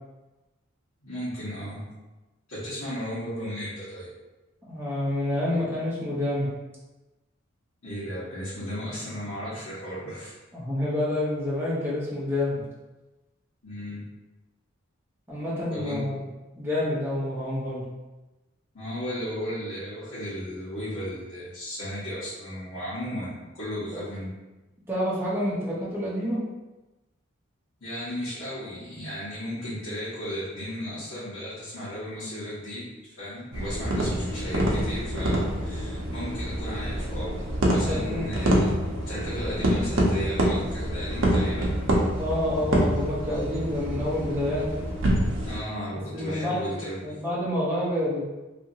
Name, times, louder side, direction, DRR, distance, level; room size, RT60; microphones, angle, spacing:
voice 1, 1.0-1.8 2.5-4.1 7.8-10.3 13.6-14.0 15.7-16.2 18.7-24.3 27.8-37.4 37.7-41.8 45.4-47.1, equal, 80° left, -13 dB, 1.2 m, -35 dB
voice 2, 4.7-6.5 10.5-12.6 15.3-16.2 16.6-17.8 24.9-26.4 37.9-38.2 42.1-44.7 46.1-46.7 47.0-48.2, left 1 dB, 10° right, -9 dB, 0.7 m, -28 dB
sound 1, 33.5-45.6, right 1 dB, 65° right, 0.6 m, -26 dB
2.8 x 2.7 x 2.7 m, 1.1 s
head